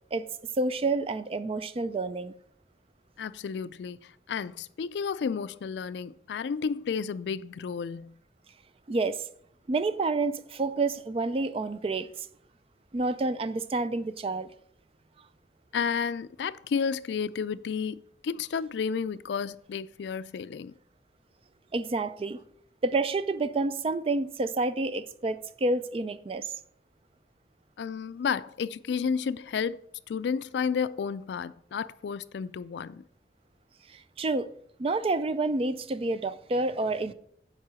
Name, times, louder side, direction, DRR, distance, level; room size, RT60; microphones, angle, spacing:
voice 1, 0.6-2.3 8.9-9.2 9.7-12.3 12.9-14.5 21.7-22.4 22.8-26.5 33.9-34.5 34.8-37.1, right 3 dB, 35° right, 0.4 m, -29 dB
voice 2, 3.2-8.2 15.7-20.7 27.8-33.0, left 6 dB, 75° left, 0.3 m, -32 dB
7.4 x 4.8 x 6.2 m
head